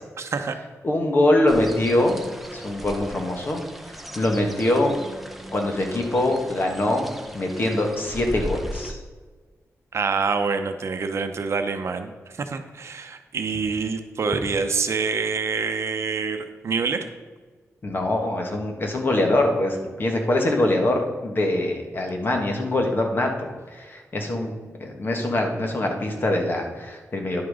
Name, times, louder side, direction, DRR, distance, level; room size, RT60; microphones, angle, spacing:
voice 1, 0.2-0.6 9.9-17.1, right 5 dB, 55° right, 7 dB, 0.8 m, -26 dB
voice 2, 0.8-4.9 5.5-9.0 17.8-27.4, left 1 dB, 40° left, 3 dB, 1.5 m, -24 dB
sound 1, 1.5-8.9, equal, 5° right, 0.8 m, -38 dB
10.5 x 6.0 x 4.9 m, 1.4 s
wide cardioid pair, 150°, 5 cm